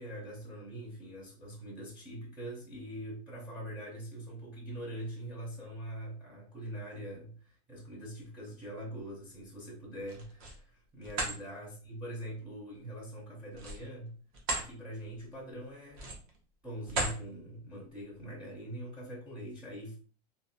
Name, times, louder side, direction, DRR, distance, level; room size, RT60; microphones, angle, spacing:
voice 1, 0.0-14.1 14.5-16.2 16.6-20.0, right 1 dB, 5° right, 0.5 m, -43 dB
sound 1, 10.0-10.6 11.0-11.4 13.5-14.7 15.1-15.3 15.9-16.4 16.8-17.2, right 2 dB, 60° right, 0.9 m, -35 dB
2.5 x 2.2 x 2.6 m
supercardioid pair, 170°, 20 cm